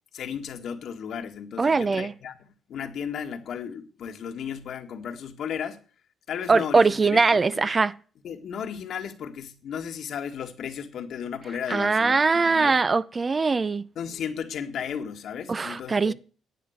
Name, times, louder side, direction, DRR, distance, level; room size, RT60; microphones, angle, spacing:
voice 1, 0.1-2.4 2.7-5.8 6.3-7.6 8.2-12.8 13.9-16.1, left 7 dB, 70° left, 1.7 m, -34 dB
voice 2, 1.6-2.1 6.5-7.9 11.7-13.8 15.5-16.1, right 4 dB, 30° right, 0.5 m, -21 dB
11.0 x 8.7 x 6.4 m
cardioid pair, 90°, 0 cm